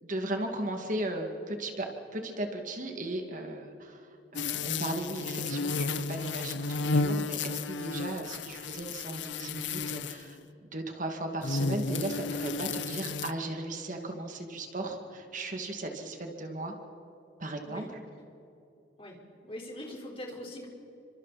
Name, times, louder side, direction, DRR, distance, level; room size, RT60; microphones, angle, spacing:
voice 1, 0.0-4.0 4.3-16.8 17.4-17.9, right 1 dB, 45° right, 3 dB, 2.3 m, -36 dB
sound 1, 4.3-10.3 11.4-13.3, left 3 dB, 80° left, 0.8 m, -32 dB
voice 2, 19.0-20.7, left 1 dB, 30° left, -1 dB, 4.5 m, -42 dB
30.0 x 25.5 x 4.2 m, 3.0 s
head